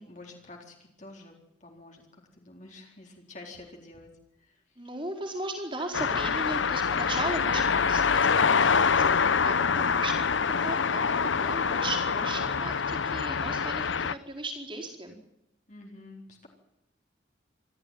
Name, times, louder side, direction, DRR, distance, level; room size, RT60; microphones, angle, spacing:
voice 1, 0.0-1.4 1.6-4.1 4.4-4.6 15.7-16.5, left 2 dB, 40° left, 0 dB, 4.1 m, -48 dB
voice 2, 4.8-10.2 10.6-11.0 11.4-15.2, right 2 dB, 25° right, 1 dB, 4.6 m, -37 dB
sound 1, 5.9-14.1, left 6 dB, 75° left, 0.8 m, -25 dB
26.0 x 14.0 x 9.3 m, 0.83 s
head